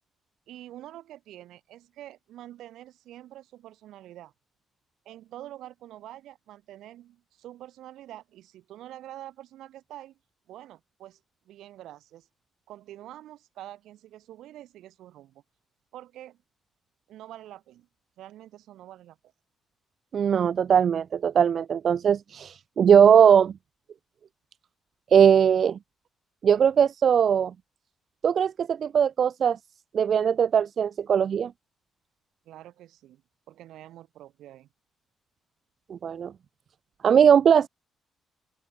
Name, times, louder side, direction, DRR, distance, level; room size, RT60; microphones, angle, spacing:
voice 1, 0.5-4.3 5.1-10.2 10.5-11.2 11.5-12.3 12.7-15.4 15.9-16.4 17.1-17.9 18.2-19.3 32.5-33.2 33.5-34.7, right 13 dB, 80° right, 3.6 m, -46 dB
voice 2, 20.1-23.5 25.1-25.8 26.4-27.5 28.2-29.6 29.9-31.5 35.9-36.3 37.0-37.7, right 8 dB, 55° right, 0.4 m, -20 dB
open air
cardioid pair, 90°, 0 cm